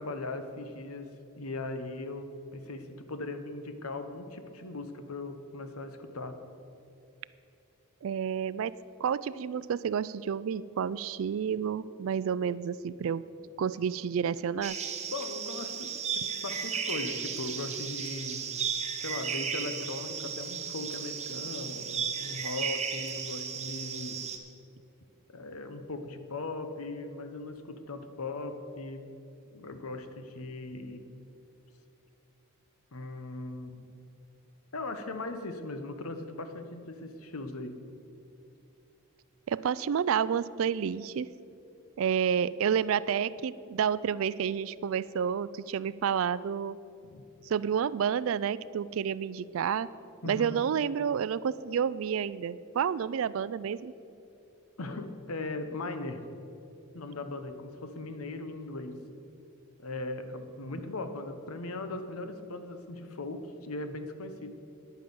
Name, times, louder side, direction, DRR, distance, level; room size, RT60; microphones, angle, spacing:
voice 1, 0.0-6.4 15.1-18.6 19.0-24.3 25.3-29.1 29.5-31.0 32.9-33.9 34.7-37.8 47.0-47.2 50.2-50.6 54.8-56.3 56.9-59.1 59.8-64.5, left 2 dB, 75° left, 9 dB, 1.0 m, -39 dB
voice 2, 8.0-8.7 9.0-13.2 13.6-14.8 39.5-41.3 42.0-46.8 47.5-49.9 50.2-53.9, right 7 dB, 65° right, 18 dB, 0.3 m, -30 dB
sound 1, 14.6-24.4, right 7 dB, 30° right, 0.8 m, -35 dB
10.5 x 9.2 x 6.9 m, 2.7 s
head